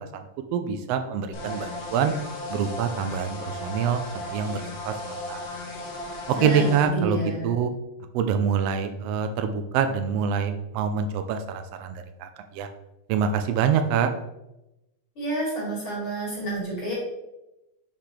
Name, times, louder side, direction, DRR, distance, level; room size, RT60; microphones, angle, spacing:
voice 1, 0.0-2.1 2.5-5.6 6.3-7.7 8.1-12.7 13.1-14.1, right 7 dB, 80° right, 8 dB, 1.5 m, -26 dB
sound 1, 1.3-6.9, left 2 dB, 60° left, 2.4 m, -36 dB
voice 2, 6.3-7.5 15.2-16.9, right 1 dB, 45° left, -5 dB, 3.0 m, -29 dB
6.6 x 5.8 x 3.3 m, 0.93 s
omnidirectional pair, 3.4 m